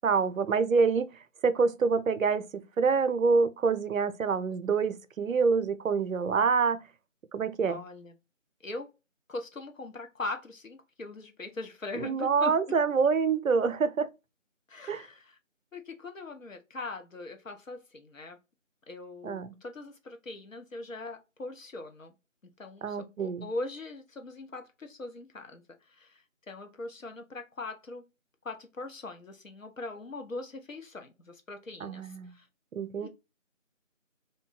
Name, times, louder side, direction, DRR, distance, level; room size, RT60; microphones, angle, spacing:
voice 1, 0.0-1.1 1.4-6.8 7.3-7.8 12.0-14.1 14.9-15.0 19.2-19.6 22.8-23.5 31.8-32.3 32.7-33.1, right 5 dB, 85° right, 0.5 m, -26 dB
voice 2, 7.7-8.2 8.6-8.9 9.3-12.6 14.7-15.4 15.7-18.4 18.9-22.1 22.6-28.1 28.4-32.5 33.0-33.1, left 2 dB, 80° left, 0.9 m, -41 dB
2.6 x 2.2 x 3.7 m
figure-of-eight pair, 175°, 39 cm